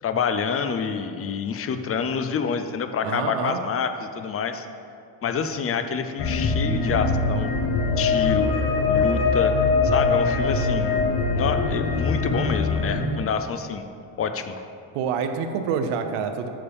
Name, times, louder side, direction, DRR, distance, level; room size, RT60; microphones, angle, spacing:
voice 1, 0.0-4.7 5.2-7.5 8.0-8.5 8.9-9.6 9.8-11.0 11.3-13.8 14.2-14.6, left 6 dB, 30° left, 9 dB, 0.4 m, -27 dB
voice 2, 3.0-3.6 12.9-13.3 14.9-16.5, right 6 dB, 90° right, 7 dB, 0.7 m, -27 dB
sound 1, 6.2-13.0, left 4 dB, 50° left, 0.9 m, -22 dB
8.7 x 7.0 x 3.5 m, 2.5 s
cardioid pair, 125°, 49 cm